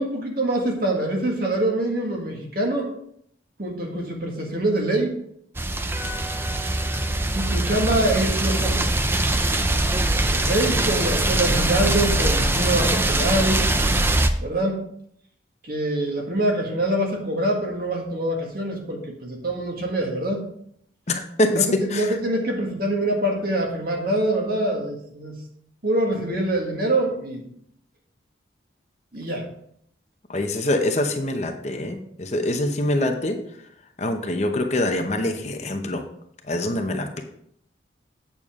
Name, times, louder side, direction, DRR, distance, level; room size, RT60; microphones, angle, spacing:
voice 1, 0.0-2.9 3.6-5.2 7.3-8.9 10.3-13.6 14.4-14.8 15.6-20.5 21.5-25.4 25.8-27.5 29.1-29.5, right 1 dB, 50° right, 1 dB, 1.8 m, -25 dB
sound 1, 5.6-14.3, right 2 dB, 10° right, 0.4 m, -22 dB
voice 2, 21.1-22.1 30.3-33.4 34.0-36.0 36.5-37.2, left 1 dB, 35° left, 5 dB, 0.8 m, -24 dB
8.7 x 6.9 x 3.7 m, 0.69 s
head